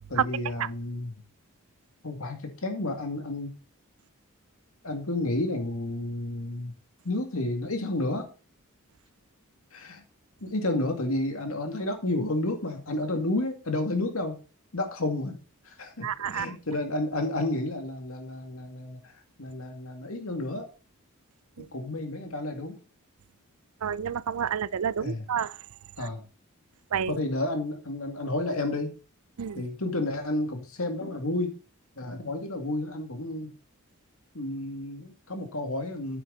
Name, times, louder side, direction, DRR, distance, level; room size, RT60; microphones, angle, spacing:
voice 1, 0.1-1.1 2.0-3.5 4.8-6.7 7.0-8.3 9.7-10.0 10.4-14.3 14.7-15.4 15.7-19.0 19.4-20.7 21.7-22.8 25.0-25.2 26.0-26.2 27.1-28.9 29.5-31.6 32.0-33.5 34.3-36.2, left 2 dB, 70° left, 2.2 m, -31 dB
voice 2, 16.0-16.5 21.6-21.7 23.8-25.6 26.9-27.2 29.4-29.7, right 8 dB, 80° right, 0.4 m, -29 dB
9.3 x 9.1 x 4.0 m
head